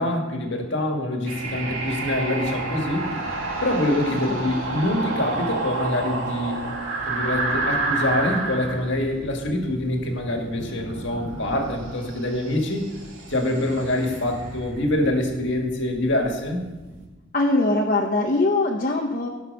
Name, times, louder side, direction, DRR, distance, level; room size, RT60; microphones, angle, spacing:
voice 1, 0.0-3.2 3.6-6.6 7.0-12.9 13.3-16.7, left 1 dB, 55° left, 3 dB, 1.8 m, -25 dB
sound 1, 1.3-17.0, right 2 dB, 70° right, 2.4 m, -31 dB
voice 2, 17.3-19.3, left 2 dB, 40° left, -1 dB, 0.8 m, -22 dB
16.5 x 6.2 x 5.4 m, 1.2 s
head